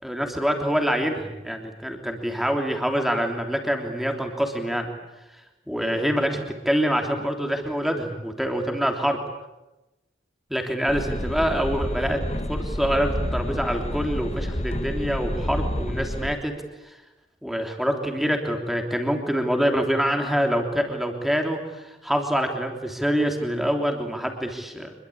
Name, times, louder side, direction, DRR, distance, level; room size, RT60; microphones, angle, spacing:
voice 1, 0.0-4.9 5.7-9.2 10.5-12.2 12.5-16.5 16.8-16.9 17.4-24.9, equal, ahead, 3 dB, 3.2 m, -25 dB
sound 1, 10.9-16.4, left 1 dB, 30° left, 1.3 m, -29 dB
26.0 x 23.0 x 8.7 m, 1.0 s
head